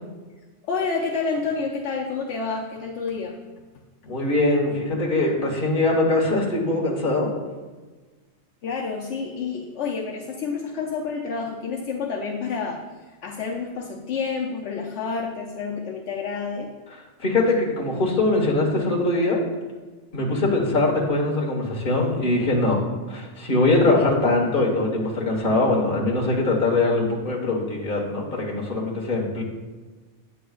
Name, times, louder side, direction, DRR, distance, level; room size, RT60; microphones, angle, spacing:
voice 1, 0.7-3.4 8.6-12.8 13.2-16.7, left 5 dB, 75° left, -2 dB, 1.0 m, -29 dB
voice 2, 4.1-7.3 17.2-19.4 20.1-22.8 23.1-29.4, left 2 dB, 45° left, -1 dB, 1.5 m, -22 dB
9.0 x 7.0 x 2.4 m, 1.3 s
omnidirectional pair, 1.2 m